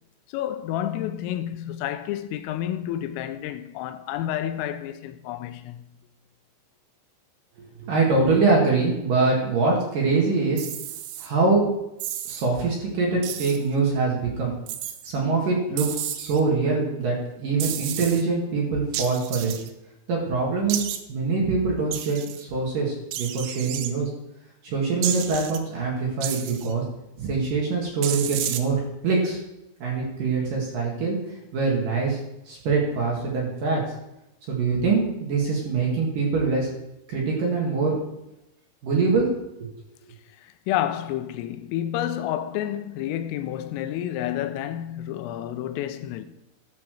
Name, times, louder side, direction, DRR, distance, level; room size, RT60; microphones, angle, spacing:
voice 1, 0.3-5.8 40.7-46.3, left 11 dB, 90° left, 3.3 m, -30 dB
voice 2, 7.8-10.7 11.2-11.6 12.3-14.6 15.0-19.5 20.1-20.8 21.1-24.1 24.6-26.8 27.2-28.8 29.0-29.4 29.8-31.2 31.5-32.2 32.5-33.8 34.5-36.7 37.1-38.0 38.8-39.3 39.6-39.7, right 4 dB, 55° right, 3.0 m, -24 dB
sound 1, 10.6-11.3 12.0-12.5 13.2-13.6 14.7-15.1 15.8-16.4 17.6-18.2 18.9-19.7 20.7-21.0 21.9-22.4 23.1-23.9 25.0-25.6 26.2-26.7 28.0-28.6, right 11 dB, 85° right, 3.1 m, -32 dB
13.5 x 5.8 x 6.4 m
omnidirectional pair, 5.9 m